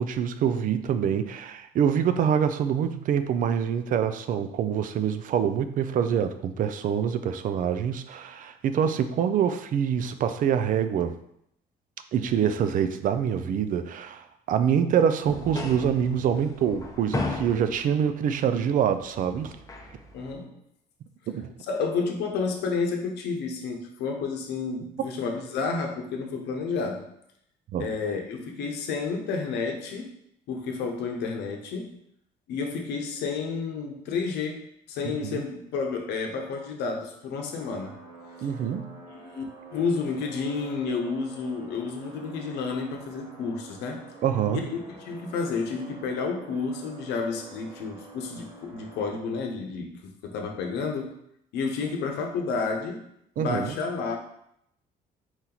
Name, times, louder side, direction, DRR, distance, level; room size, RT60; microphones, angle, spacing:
voice 1, 0.0-11.1 12.1-19.5 21.3-21.5 27.7-27.9 35.0-35.4 38.4-38.9 44.2-44.6 53.4-53.8, right 8 dB, 55° right, 10 dB, 0.4 m, -25 dB
sound 1, 15.2-20.3, left 3 dB, 20° left, 0.6 m, -36 dB
voice 2, 20.1-20.6 21.7-27.0 27.8-30.1 30.5-32.0 32.5-38.0 38.4-38.5 39.2-44.1 44.5-51.2 51.5-53.1 53.4-54.2, left 4 dB, 80° left, 3 dB, 0.8 m, -31 dB
sound 2, 37.6-49.1, right 1 dB, 25° right, 1.4 m, -47 dB
4.4 x 2.9 x 3.8 m, 0.73 s
cardioid pair, 110°, 17 cm